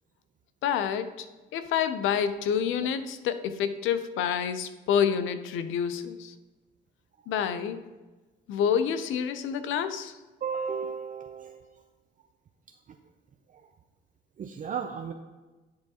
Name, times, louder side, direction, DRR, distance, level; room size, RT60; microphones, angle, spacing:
voice 1, 0.6-1.3 1.5-6.3 7.3-7.8 8.5-10.2, left 8 dB, 85° left, 11 dB, 0.5 m, -28 dB
voice 2, 10.4-11.8 13.5-13.7 14.4-15.1, right 6 dB, 40° right, 5 dB, 0.4 m, -35 dB
10.0 x 4.7 x 2.8 m, 1.2 s
cardioid pair, 90°, 20 cm